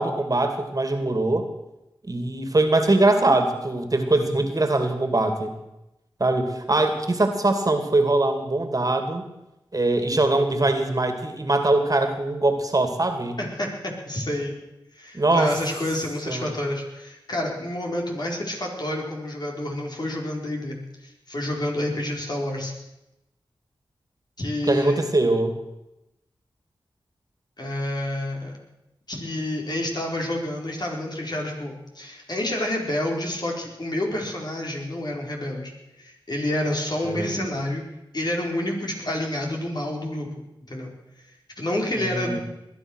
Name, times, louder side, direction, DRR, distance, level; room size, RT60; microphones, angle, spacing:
voice 1, 0.0-1.4 2.0-5.5 6.2-9.3 9.7-13.4 15.1-15.5 16.3-16.4 24.7-25.5 37.0-37.6 42.0-42.4, right 2 dB, 40° right, 7 dB, 2.5 m, -22 dB
voice 2, 13.4-14.5 14.9-20.8 21.0-22.7 24.4-25.0 27.6-28.5 29.1-35.7 36.0-37.8 38.1-40.3 40.7-40.9 41.6-42.4, left 1 dB, 50° left, 0 dB, 4.5 m, -28 dB
20.5 x 10.5 x 6.4 m, 0.92 s
cardioid pair, 40°, 9 cm